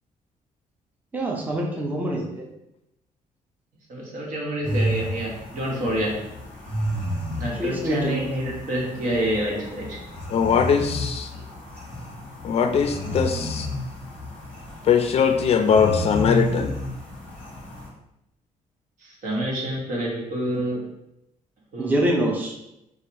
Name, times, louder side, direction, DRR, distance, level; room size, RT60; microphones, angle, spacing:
voice 1, 1.1-2.5 7.6-8.2 21.8-22.5, right 1 dB, 10° right, -1 dB, 0.6 m, -25 dB
voice 2, 3.9-6.1 7.4-10.0 19.0-20.8 21.7-22.0, right 1 dB, 65° right, -2 dB, 1.4 m, -27 dB
Soft Female Snoring, 4.6-17.9, equal, 10° left, 1.2 m, -31 dB
voice 3, 10.3-11.3 12.4-13.7 14.8-16.7, left 6 dB, 45° left, 6 dB, 0.4 m, -21 dB
4.0 x 2.4 x 4.6 m, 0.85 s
cardioid pair, 150°, 14 cm